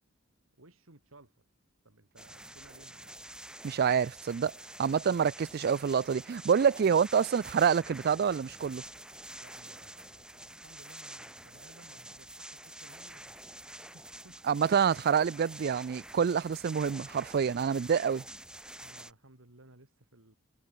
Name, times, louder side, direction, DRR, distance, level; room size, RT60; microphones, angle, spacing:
voice 1, 0.6-1.4 1.8-3.4 6.8-7.0 9.4-13.4 13.7-14.5 17.7-17.8 18.8-20.3, right 2 dB, 80° right, 3.1 m, -59 dB
sound 1, 2.2-19.1, right 1 dB, 5° right, 2.0 m, -48 dB
voice 2, 3.6-4.5 4.8-8.8 14.5-18.2, right 7 dB, 50° right, 0.4 m, -27 dB
head